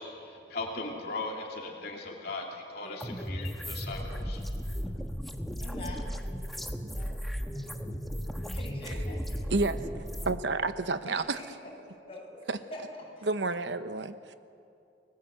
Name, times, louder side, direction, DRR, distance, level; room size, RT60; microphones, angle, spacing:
voice 1, 0.0-4.4, left 3 dB, 55° left, -1 dB, 2.7 m, -38 dB
sound 1, 3.0-10.4, equal, ahead, 1.3 m, -35 dB
voice 2, 5.6-6.1 6.8-7.1 8.5-9.6 11.1-11.4 12.1-12.4 12.7-12.8 13.2-13.3, left 1 dB, 30° left, -3 dB, 7.6 m, -44 dB
voice 3, 9.5-11.4 12.5-12.6 13.2-14.3, right 3 dB, 70° right, 10 dB, 1.0 m, -30 dB
30.0 x 19.5 x 7.9 m, 2.6 s
head